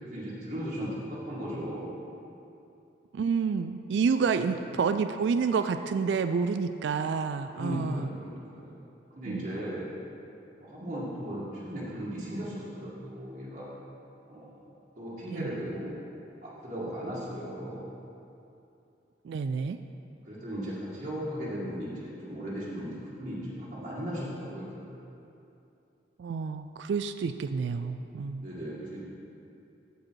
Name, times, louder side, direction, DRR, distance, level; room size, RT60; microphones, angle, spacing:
voice 1, 0.0-2.0 4.3-4.4 7.5-8.9 9.1-9.9 10.6-13.7 14.3-16.0 16.4-17.9 20.2-25.0 28.4-29.0, equal, 45° right, -9 dB, 2.0 m, -37 dB
voice 2, 3.1-8.1 9.3-9.5 15.3-15.5 19.2-19.8 26.2-28.5, right 5 dB, 75° right, 9 dB, 0.3 m, -29 dB
14.5 x 5.0 x 4.6 m, 2.8 s
head